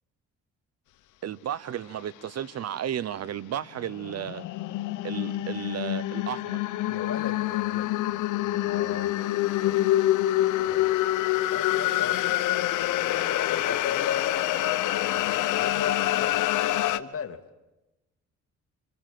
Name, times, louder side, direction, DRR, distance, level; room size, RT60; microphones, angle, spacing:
voice 1, 1.2-4.5 5.0-6.6 13.7-13.8, right 10 dB, 55° right, 0.9 m, -33 dB
sound 1, 3.8-17.0, left 14 dB, 85° left, 1.1 m, -26 dB
voice 2, 6.9-9.1 9.5-9.8 10.6-10.9 11.5-12.4 13.1-14.3 14.9-16.5 16.9-17.4, left 7 dB, 50° left, 2.4 m, -38 dB
26.5 x 25.5 x 7.6 m
cardioid pair, 90°, 30 cm